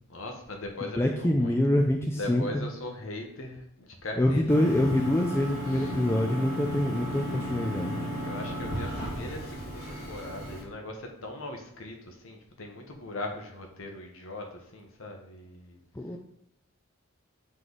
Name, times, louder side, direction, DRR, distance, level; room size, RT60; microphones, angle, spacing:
voice 1, 0.1-1.6 2.2-5.1 5.7-5.9 8.2-15.8, left 1 dB, 75° left, 2 dB, 1.0 m, -40 dB
voice 2, 1.0-2.6 4.2-8.0 15.9-16.2, left 1 dB, 10° left, 1 dB, 0.4 m, -25 dB
sound 1, 4.5-10.6, equal, 45° left, 2.2 m, -35 dB
7.5 x 3.2 x 3.9 m, 0.71 s
head